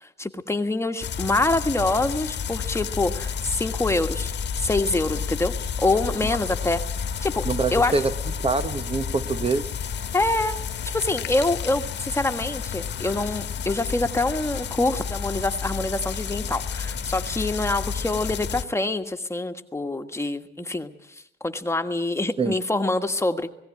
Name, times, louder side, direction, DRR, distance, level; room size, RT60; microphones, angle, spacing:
voice 1, 0.0-6.8 7.2-7.5 7.7-7.9 10.1-10.5 10.9-23.5, left 2 dB, 15° left, 1.6 m, -25 dB
sound 1, 1.0-18.6, left 7 dB, 60° left, 1.4 m, -31 dB
voice 2, 7.4-8.1 8.4-9.7 22.4-22.5, right 4 dB, 30° right, 0.9 m, -24 dB
18.5 x 17.0 x 9.8 m
cardioid pair, 90°, 20 cm